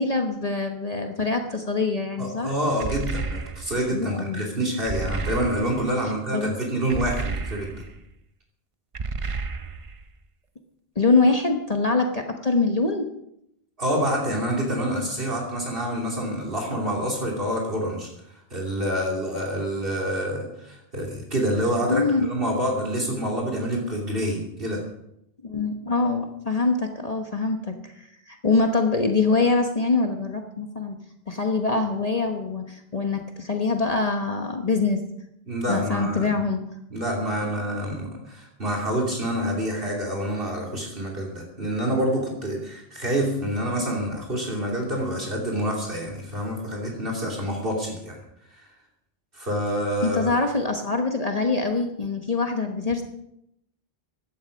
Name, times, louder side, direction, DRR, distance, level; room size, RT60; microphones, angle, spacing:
voice 1, 0.0-2.5 3.9-4.4 6.3-6.6 11.0-13.1 21.9-22.3 25.4-31.0 31.3-35.0 35.7-36.6 50.0-53.0, left 3 dB, 40° left, 3 dB, 1.3 m, -24 dB
voice 2, 2.2-7.8 13.8-18.1 18.5-24.8 35.5-36.3 36.9-48.2 48.5-48.6 49.3-50.3, equal, 60° right, -1 dB, 3.0 m, -27 dB
sound 1, 2.8-3.9 4.8-5.9 6.9-8.0 8.9-10.0, right 4 dB, 35° right, 0.7 m, -31 dB
16.5 x 12.0 x 5.2 m, 0.78 s
omnidirectional pair, 1.0 m